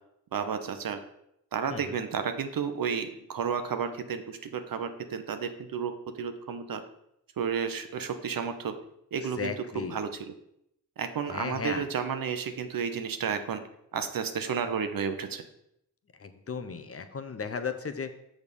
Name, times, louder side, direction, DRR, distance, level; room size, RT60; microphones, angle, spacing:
voice 1, 0.3-1.0 1.5-6.8 7.4-8.7 9.1-10.3 11.0-13.6 13.9-15.4, right 6 dB, 65° right, 8 dB, 0.9 m, -32 dB
voice 2, 9.4-10.0 11.3-11.8 16.2-18.1, left 5 dB, 40° left, 9 dB, 0.8 m, -35 dB
6.4 x 5.1 x 5.3 m, 0.78 s
cardioid pair, 55°, 37 cm